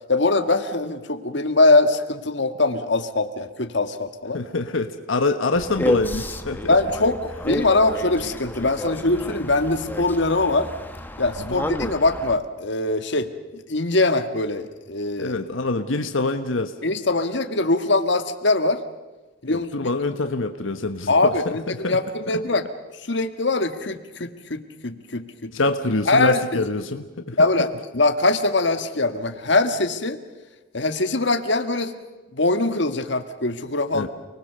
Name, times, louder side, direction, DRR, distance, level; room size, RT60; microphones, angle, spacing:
voice 1, 0.1-4.4 6.7-10.7 11.2-15.4 16.8-18.8 19.4-19.9 21.1-21.6 21.9-22.6 23.1-25.5 26.1-26.4 27.4-27.7 27.9-30.2 30.7-31.9 32.3-34.1, left 2 dB, 65° left, 7 dB, 1.7 m, -22 dB
voice 2, 4.3-6.7 11.4-11.7 15.2-16.7 19.5-22.4 25.5-27.4 33.9-34.1, left 3 dB, 90° left, 7 dB, 1.3 m, -25 dB
sound 1, 5.5-12.4, left 1 dB, 10° left, 1.2 m, -30 dB
30.0 x 20.5 x 6.9 m, 1.2 s
head